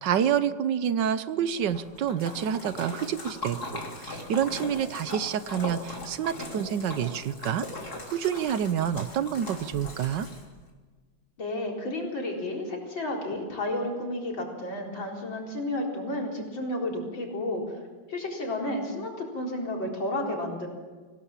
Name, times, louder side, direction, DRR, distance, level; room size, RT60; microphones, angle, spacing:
voice 1, 0.0-7.7 8.1-10.3, right 9 dB, 70° right, 13 dB, 1.5 m, -28 dB
Splash splatter, 1.5-10.7, left 2 dB, 55° left, 3.9 m, -39 dB
voice 2, 11.4-17.6 18.1-20.7, left 1 dB, 80° left, -1 dB, 4.9 m, -32 dB
25.5 x 17.5 x 7.3 m, 1.4 s
omnidirectional pair, 2.1 m